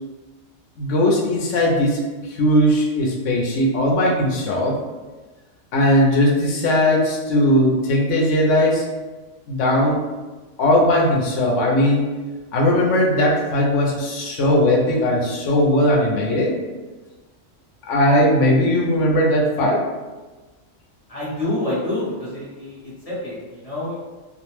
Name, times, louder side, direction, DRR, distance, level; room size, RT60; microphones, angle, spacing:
voice 1, 0.8-4.8 5.7-8.9 9.5-10.1 10.6-12.1 12.5-16.6 17.9-19.8, left 1 dB, 70° left, -2 dB, 0.9 m, -18 dB
voice 2, 21.1-24.0, left 1 dB, 35° left, -9 dB, 0.7 m, -27 dB
2.4 x 2.1 x 3.0 m, 1.2 s
omnidirectional pair, 1.4 m